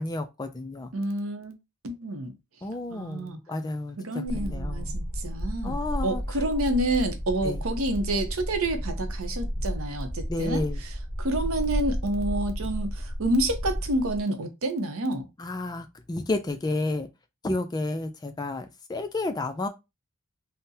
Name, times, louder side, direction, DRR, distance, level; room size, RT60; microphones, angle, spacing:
voice 1, 0.0-0.9 2.6-4.9 5.6-6.2 7.4-7.6 10.3-10.8 15.4-17.1 17.4-19.7, left 2 dB, 20° left, 0.3 m, -31 dB
voice 2, 0.9-1.5 1.8-2.3 2.9-3.4 4.0-10.9 11.2-15.3, right 1 dB, 75° right, 0.7 m, -29 dB
sound 1, 4.2-14.2, equal, 35° right, 0.9 m, -32 dB
3.7 x 2.1 x 2.7 m
head